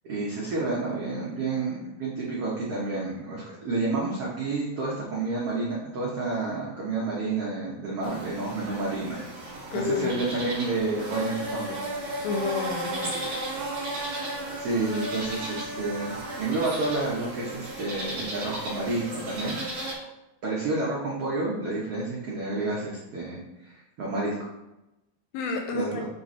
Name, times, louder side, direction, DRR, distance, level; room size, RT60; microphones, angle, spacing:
voice 1, 0.0-9.2 9.8-11.8 14.6-19.6 20.4-24.5 25.7-26.0, right 3 dB, 85° right, -5 dB, 1.3 m, -30 dB
sound 1, 8.0-19.9, right 1 dB, 35° right, 2.5 m, -34 dB
voice 2, 9.7-10.1 12.2-13.1 25.3-26.0, left 4 dB, 80° left, 4 dB, 2.2 m, -29 dB
7.6 x 3.8 x 4.2 m, 0.95 s
omnidirectional pair, 4.5 m